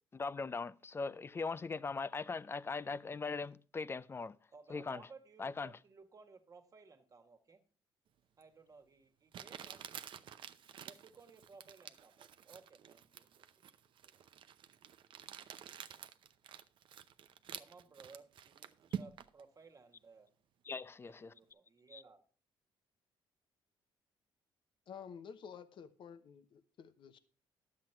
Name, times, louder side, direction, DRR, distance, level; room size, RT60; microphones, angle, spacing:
voice 1, 0.1-4.4 4.7-5.0 5.4-5.7 20.7-21.3 21.9-22.0, left 4 dB, 25° left, 0.5 m, -40 dB
voice 2, 4.5-7.6 8.4-9.8 10.7-13.7 14.0-14.2 17.6-20.3 21.0-22.2, right 4 dB, 35° right, 1.5 m, -59 dB
Crumpling crinkling, 8.4-8.5 9.3-19.4, right 9 dB, 60° right, 0.7 m, -49 dB
voice 3, 24.9-27.2, left 7 dB, 60° left, 0.9 m, -51 dB
10.5 x 7.6 x 4.5 m
cardioid pair, 90°, 9 cm